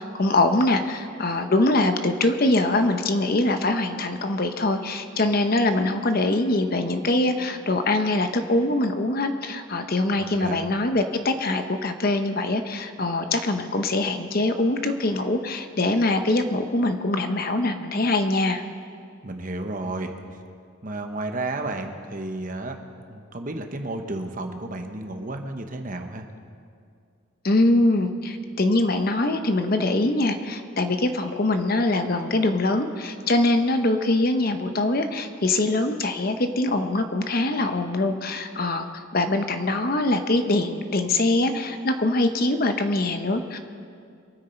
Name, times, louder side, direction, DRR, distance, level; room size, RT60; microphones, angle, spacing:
voice 1, 0.0-18.6 27.4-43.6, left 2 dB, 45° left, 8 dB, 0.8 m, -23 dB
voice 2, 10.2-10.6 19.2-20.1 20.8-26.3, right 2 dB, 40° right, 5 dB, 1.0 m, -32 dB
24.0 x 9.6 x 4.4 m, 2.3 s
head